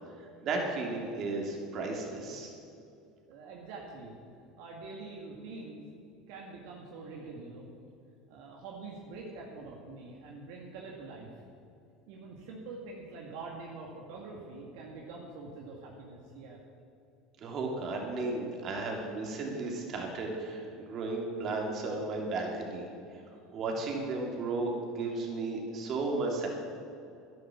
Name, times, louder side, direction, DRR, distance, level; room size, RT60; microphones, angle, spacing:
voice 1, 0.4-2.5 17.4-23.2 23.5-26.5, right 3 dB, 45° right, 0 dB, 3.0 m, -34 dB
voice 2, 3.3-4.1 4.6-5.8 6.3-7.7 8.3-11.3 12.1-16.6, right 3 dB, 75° right, -1 dB, 2.0 m, -45 dB
11.0 x 10.5 x 7.3 m, 2.5 s
supercardioid pair, 105°, 0 cm